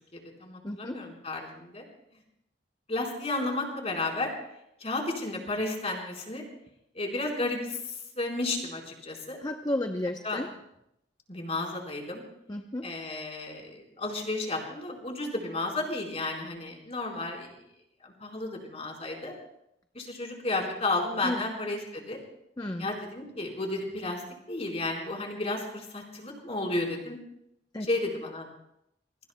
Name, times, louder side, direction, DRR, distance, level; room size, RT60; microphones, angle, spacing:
voice 1, 0.1-1.8 2.9-4.3 4.8-6.5 6.9-9.4 10.2-10.4 11.3-12.2 12.8-17.5 18.0-19.3 19.9-22.2 22.8-24.2 24.5-27.2 27.8-28.5, left 2 dB, 35° left, 0 dB, 4.3 m, -32 dB
voice 2, 0.6-1.0 9.4-10.5 12.5-12.8 21.2-21.4 22.6-22.9 27.7-27.9, left 1 dB, 20° left, 5 dB, 0.8 m, -32 dB
27.5 x 23.5 x 2.2 m, 0.78 s
head